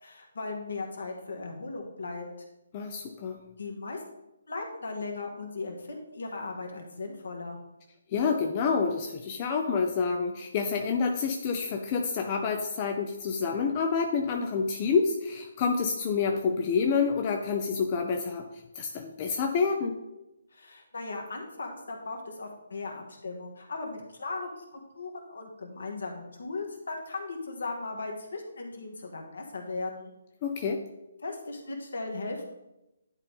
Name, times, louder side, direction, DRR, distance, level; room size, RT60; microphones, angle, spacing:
voice 1, 0.0-2.3 3.6-4.0 4.5-7.6 20.5-30.1 31.2-32.6, left 3 dB, 65° left, 2 dB, 1.5 m, -37 dB
voice 2, 2.7-3.4 8.1-18.5 18.8-20.0 30.4-30.8, left 5 dB, 30° left, 3 dB, 0.6 m, -28 dB
10.5 x 4.0 x 3.5 m, 0.92 s
figure-of-eight pair, 140°, 0 cm